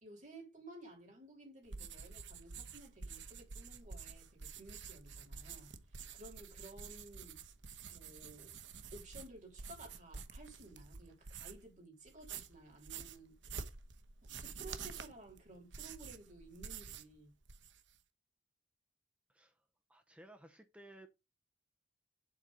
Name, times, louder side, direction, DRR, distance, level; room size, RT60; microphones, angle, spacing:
voice 1, 0.0-7.4 7.9-8.5 8.9-13.4 14.2-17.3, right 2 dB, 40° right, 3.6 m, -55 dB
sound 1, 1.7-11.7 12.1-17.1 17.4-18.0, right 5 dB, 70° right, 1.0 m, -49 dB
voice 2, 19.3-19.6 19.9-21.1, right 1 dB, 5° right, 0.7 m, -57 dB
7.6 x 4.2 x 6.4 m
head